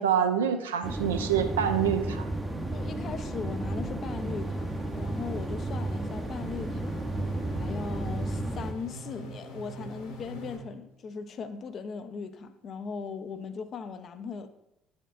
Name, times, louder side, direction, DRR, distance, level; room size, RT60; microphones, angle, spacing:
voice 1, 0.0-2.3, right 8 dB, 80° right, 7 dB, 0.4 m, -26 dB
sound 1, 0.8-8.7, right 2 dB, 15° right, 0.6 m, -33 dB
voice 2, 2.7-7.1 7.5-14.5, left 5 dB, 45° left, 10 dB, 0.5 m, -39 dB
sound 2, 4.1-10.6, equal, 65° left, 1.5 m, -45 dB
9.7 x 4.4 x 2.5 m, 0.87 s
figure-of-eight pair, 55°, 0 cm